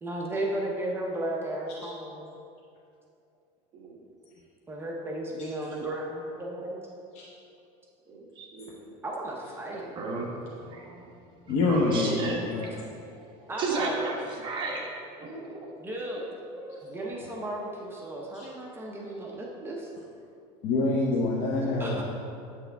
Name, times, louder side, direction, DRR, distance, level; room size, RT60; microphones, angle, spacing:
voice 1, 0.0-2.3 4.7-6.8 9.0-9.9 11.8-12.3 13.5-14.0 15.8-16.3 16.8-19.9 21.8-22.0, right 1 dB, 15° right, -2 dB, 0.8 m, -34 dB
voice 2, 8.1-8.9 9.9-11.1 11.4-12.8 13.1-13.3 13.6-14.9 15.2-15.7 16.5-16.9, right 3 dB, 35° right, -2 dB, 1.4 m, -34 dB
voice 3, 11.5-12.2 12.5-12.7 18.3-18.5 20.6-22.0, left 3 dB, 50° left, -3 dB, 0.8 m, -26 dB
8.9 x 6.2 x 3.5 m, 2.5 s
cardioid pair, 150°, 14 cm